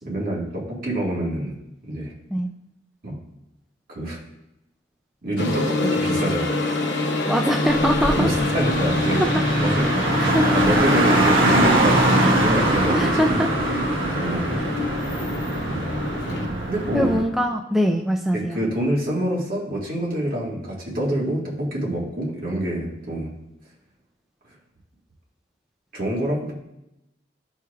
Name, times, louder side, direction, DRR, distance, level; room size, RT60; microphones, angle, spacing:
voice 1, 0.0-1.6 1.8-2.1 3.0-3.2 3.9-4.2 5.2-6.6 8.2-10.1 10.5-13.6 14.1-14.6 15.7-15.9 16.7-17.1 18.3-23.3 25.9-26.5, right 1 dB, 55° right, -4 dB, 1.8 m, -26 dB
sound 1, 5.4-16.5, left 2 dB, 70° left, 0.9 m, -26 dB
voice 2, 7.3-8.3 9.2-9.3 10.2-10.5 12.9-13.5 16.9-18.6, equal, ahead, 1 dB, 0.3 m, -22 dB
Car, 7.7-17.2, right 1 dB, 70° right, 1.6 m, -22 dB
12.0 x 4.5 x 2.4 m, 0.89 s
head